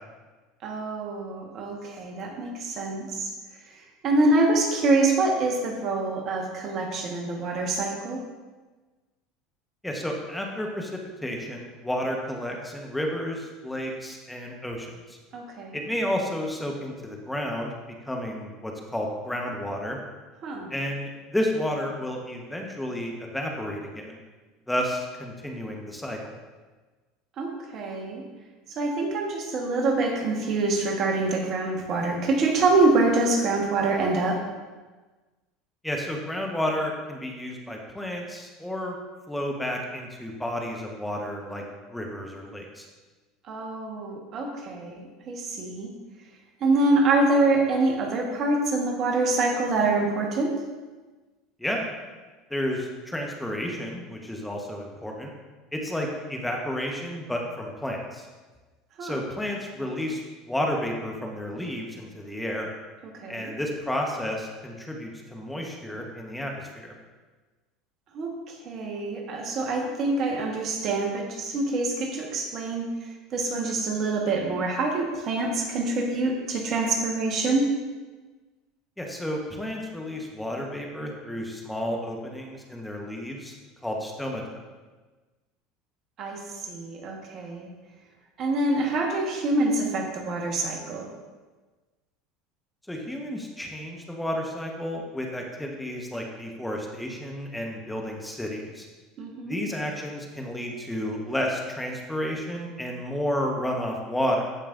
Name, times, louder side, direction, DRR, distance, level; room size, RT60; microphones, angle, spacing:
voice 1, 0.6-3.3 3.7-8.2 15.3-15.8 20.4-20.7 27.4-28.2 28.7-34.4 43.5-45.9 46.6-50.5 59.0-59.2 63.0-63.5 68.1-72.9 73.3-77.7 86.2-87.7 88.4-91.1 99.2-99.6, right 2 dB, 50° right, 1 dB, 1.5 m, -25 dB
voice 2, 9.8-15.2 15.7-17.7 18.0-20.0 20.7-24.2 24.7-26.3 35.8-39.0 39.3-41.6 41.9-42.9 51.6-51.9 52.5-55.3 55.7-58.3 59.0-62.7 63.3-66.9 79.0-83.5 83.8-84.6 92.9-98.9 99.4-104.5, equal, 5° left, 0 dB, 1.3 m, -31 dB
14.5 x 5.3 x 2.7 m, 1.3 s
hypercardioid pair, 80°, 0 cm